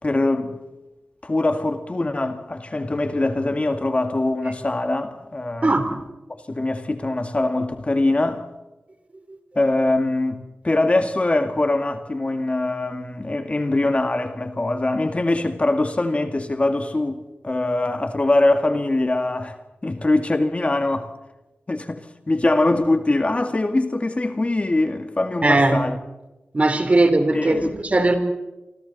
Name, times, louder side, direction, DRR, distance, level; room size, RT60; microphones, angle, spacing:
voice 1, 0.0-0.6 1.2-5.8 6.3-8.5 9.6-19.6 19.8-21.1 21.7-26.0 27.3-27.7, left 2 dB, 35° left, 2.1 m, -22 dB
voice 2, 5.6-5.9 25.4-25.8 26.5-27.6 27.8-28.1, right 2 dB, 35° right, 3.6 m, -18 dB
27.0 x 26.0 x 4.2 m
wide cardioid pair, 75°, 4 cm